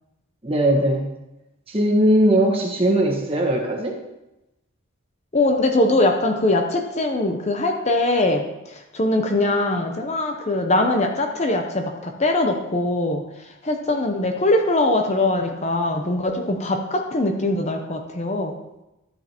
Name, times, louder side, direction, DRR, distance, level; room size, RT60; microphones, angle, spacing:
voice 1, 0.4-1.1 1.7-4.0, right 1 dB, 25° right, -1 dB, 1.4 m, -19 dB
voice 2, 5.3-18.6, left 2 dB, 30° left, 4 dB, 0.7 m, -22 dB
12.5 x 8.7 x 3.0 m, 0.94 s
head